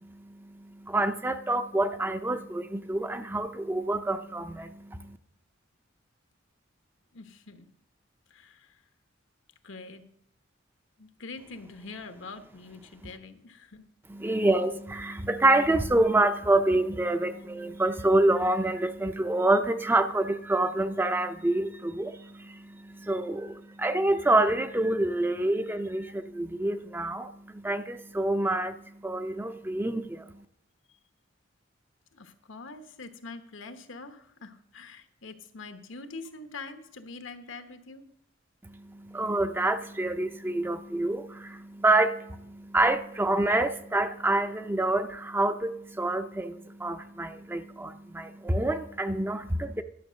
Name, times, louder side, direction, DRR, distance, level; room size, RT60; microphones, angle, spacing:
voice 1, 0.0-5.2 14.1-30.4 38.6-49.8, right 2 dB, 10° right, 0.5 m, -27 dB
voice 2, 7.1-7.7 8.3-8.8 9.6-10.0 11.0-13.9 14.2-14.3 17.3-17.4 32.1-38.1, left 3 dB, 80° left, 1.1 m, -44 dB
12.0 x 6.5 x 6.3 m
head